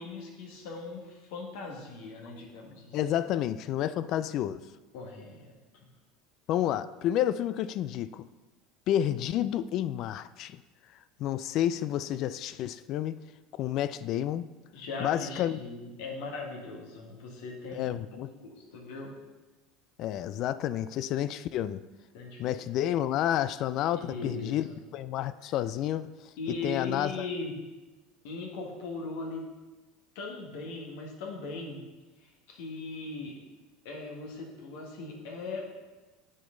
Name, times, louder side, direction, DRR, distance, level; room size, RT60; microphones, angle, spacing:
voice 1, 0.0-3.0 4.9-5.9 14.7-17.9 18.3-19.2 22.1-22.6 23.9-24.8 25.4-25.5 26.4-27.6 28.2-29.5 30.1-31.8 32.2-33.4 33.8-35.7, left 3 dB, 75° left, 0 dB, 1.7 m, -39 dB
voice 2, 2.9-4.6 6.5-8.3 8.9-10.6 11.2-13.2 13.5-14.4 15.0-15.6 17.7-18.3 20.0-21.8 22.4-26.3 26.6-27.3, left 11 dB, 55° left, 15 dB, 0.3 m, -30 dB
7.9 x 6.3 x 3.8 m, 1.2 s
supercardioid pair, 95°, 0 cm